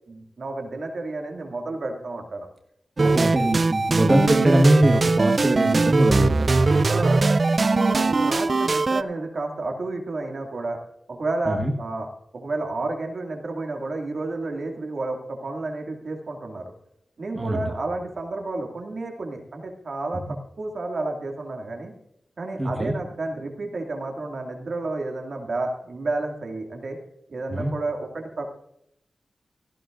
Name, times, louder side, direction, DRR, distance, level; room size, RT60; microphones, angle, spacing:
voice 1, 0.1-2.5 3.0-3.3 6.9-7.2 7.6-10.8 11.1-12.1 12.3-16.7 17.2-20.2 20.6-21.9 22.4-27.0 27.3-28.5, right 2 dB, 60° right, 2 dB, 2.3 m, -31 dB
voice 2, 3.0-6.8 11.5-11.7 17.3-17.7 20.3-20.4 22.6-22.9 27.5-27.7, right 1 dB, 25° right, 1 dB, 1.5 m, -22 dB
sound 1, 3.0-9.0, right 3 dB, 45° right, 0.4 m, -20 dB
17.0 x 14.5 x 2.6 m, 0.74 s
wide cardioid pair, 100°, 0 cm